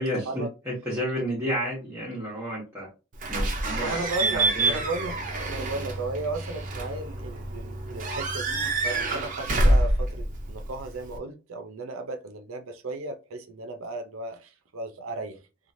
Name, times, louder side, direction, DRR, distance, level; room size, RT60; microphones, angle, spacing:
voice 1, 0.0-2.9 3.3-4.8, equal, 15° right, 0.9 m, -31 dB
Slam / Squeak / Alarm, 3.2-11.2, right 2 dB, 40° right, 0.6 m, -27 dB
voice 2, 3.7-5.2 5.5-14.4 14.7-15.4, right 2 dB, 90° right, 0.5 m, -35 dB
3.0 x 2.3 x 2.6 m
head